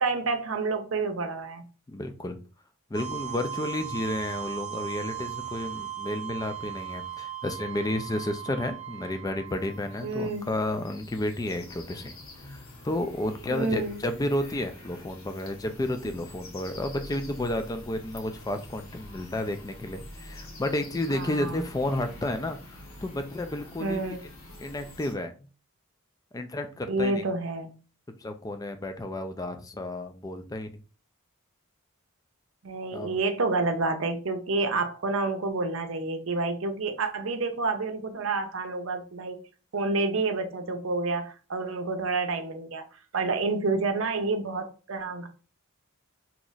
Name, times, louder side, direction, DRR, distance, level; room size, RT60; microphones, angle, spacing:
voice 1, 0.0-1.6 10.0-10.5 13.5-14.0 21.1-21.6 23.8-24.2 26.9-27.7 32.6-39.4 39.7-42.8 43.1-45.3, right 3 dB, 65° right, 7 dB, 0.6 m, -29 dB
voice 2, 1.9-2.4 2.9-12.1 12.4-24.2 24.6-25.3 26.3-27.2 28.2-30.8 32.9-33.2, left 1 dB, 15° left, 7 dB, 0.4 m, -32 dB
sound 1, 2.9-10.7, right 11 dB, 35° right, 1.0 m, -38 dB
sound 2, 9.5-25.1, left 1 dB, 85° left, 0.9 m, -46 dB
2.9 x 2.4 x 3.9 m, 0.36 s
head